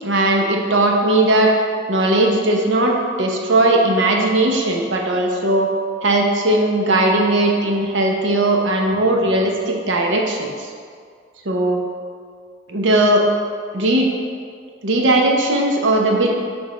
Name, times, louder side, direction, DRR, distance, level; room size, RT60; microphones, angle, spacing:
voice 1, 0.0-1.5 1.9-5.7 6.0-10.7 11.4-11.8 12.7-13.3 13.7-14.1 14.8-16.3, right 1 dB, 80° right, 0 dB, 0.8 m, -18 dB
6.1 x 3.5 x 4.9 m, 2.1 s
head